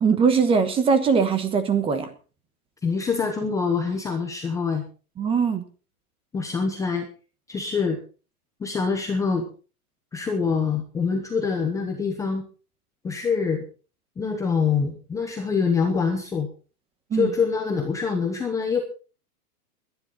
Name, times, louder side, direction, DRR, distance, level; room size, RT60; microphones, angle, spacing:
voice 1, 0.0-2.1 5.2-5.6 17.1-17.3, right 5 dB, 10° right, 10 dB, 1.2 m, -21 dB
voice 2, 2.8-4.8 6.3-7.1 7.5-8.0 8.6-9.5 10.1-12.4 13.0-13.6 14.2-16.5 17.1-18.8, left 5 dB, 5° left, 3 dB, 0.9 m, -25 dB
22.5 x 10.5 x 3.8 m, 0.37 s
hypercardioid pair, 160°, 46 cm